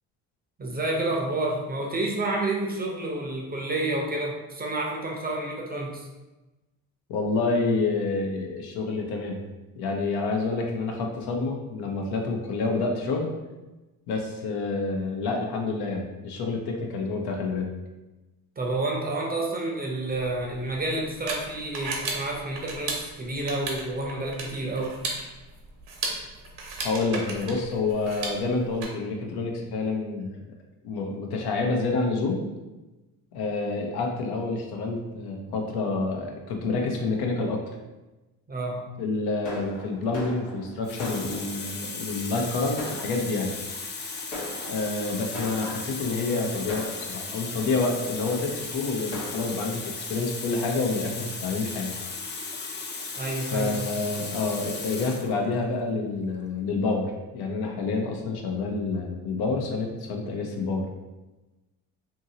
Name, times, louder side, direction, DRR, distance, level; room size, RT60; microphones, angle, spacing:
voice 1, 0.6-6.1 18.6-25.0 38.5-38.8 53.2-53.9, right 2 dB, 25° right, 0 dB, 0.6 m, -29 dB
voice 2, 7.1-9.4 9.8-13.3 14.1-17.7 26.8-30.5 30.8-32.4 33.3-37.6 39.0-43.6 44.7-52.0 53.5-60.9, left 3 dB, 65° left, 1 dB, 0.7 m, -28 dB
sound 1, 20.1-28.8, right 3 dB, 70° right, 0.9 m, -35 dB
Fireworks, 39.4-41.8 42.4-42.5 42.8-43.6 44.3-46.1 46.7-47.6 48.3-48.4 48.7-48.8 49.1-49.5, left 1 dB, 85° left, 1.0 m, -39 dB
Water tap faucet, 40.0-40.3 40.8-55.3 56.2-56.4, left 4 dB, 25° left, 0.4 m, -36 dB
2.7 x 2.7 x 2.7 m, 1.1 s
supercardioid pair, 75°, 40 cm